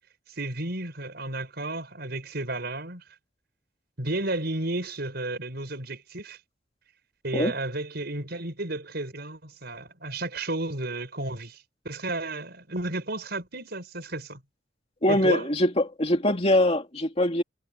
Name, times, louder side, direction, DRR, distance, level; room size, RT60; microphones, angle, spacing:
voice 1, 0.4-3.0 4.0-6.4 7.2-14.4 15.1-15.5, right 2 dB, 60° right, 6.4 m, -32 dB
voice 2, 15.0-17.4, left 1 dB, 35° left, 2.6 m, -23 dB
head